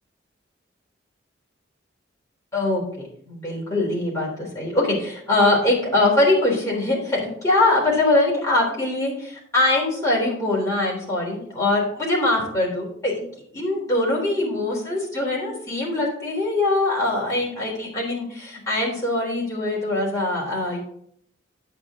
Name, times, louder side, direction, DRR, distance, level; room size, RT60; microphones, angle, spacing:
voice 1, 2.5-13.2 13.5-20.8, left 2 dB, 15° left, -4 dB, 3.4 m, -22 dB
9.7 x 8.3 x 3.7 m, 0.65 s
head